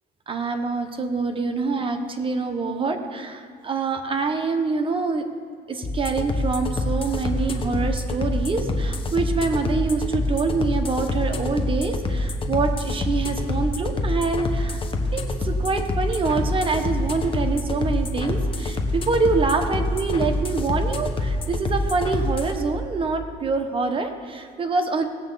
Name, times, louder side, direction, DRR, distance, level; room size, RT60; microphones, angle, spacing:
voice 1, 0.3-5.3 5.7-14.8 15.1-25.0, right 4 dB, 30° right, 6 dB, 1.2 m, -25 dB
sound 1, 5.8-22.5, left 2 dB, 30° left, 1.1 m, -26 dB
17.5 x 7.9 x 4.1 m, 2.2 s
cardioid pair, 110°, 17 cm